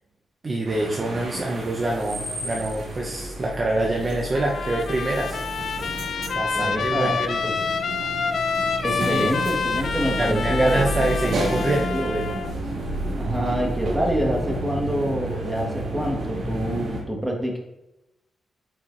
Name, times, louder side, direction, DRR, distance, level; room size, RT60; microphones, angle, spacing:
voice 1, 0.4-5.4 6.3-7.4 8.9-9.3 10.2-12.4, right 2 dB, 35° right, -2 dB, 0.7 m, -26 dB
sound 1, 0.6-17.0, right 1 dB, 75° right, 1.8 m, -31 dB
Trumpet, 4.3-12.5, left 5 dB, 60° left, 0.4 m, -28 dB
voice 2, 6.5-7.1 7.4-7.6 8.8-10.9 11.2-12.1 13.2-17.6, equal, 10° right, 0 dB, 1.3 m, -27 dB
8.5 x 4.4 x 2.5 m, 0.91 s
wide cardioid pair, 120°, 0 cm